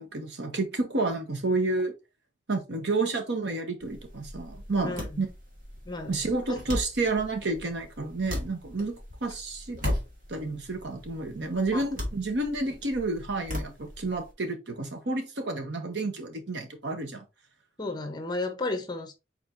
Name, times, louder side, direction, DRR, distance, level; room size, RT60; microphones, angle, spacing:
voice 1, 0.0-1.9 2.5-5.3 6.1-10.0 10.3-17.2, right 3 dB, 65° right, 1.0 m, -30 dB
sound 1, 3.8-14.3, left 1 dB, 45° right, 1.7 m, -37 dB
voice 2, 4.8-5.3 5.8-6.2 6.5-6.6 11.7-11.9 17.8-19.1, left 2 dB, 20° left, 0.7 m, -33 dB
4.6 x 4.2 x 2.6 m
head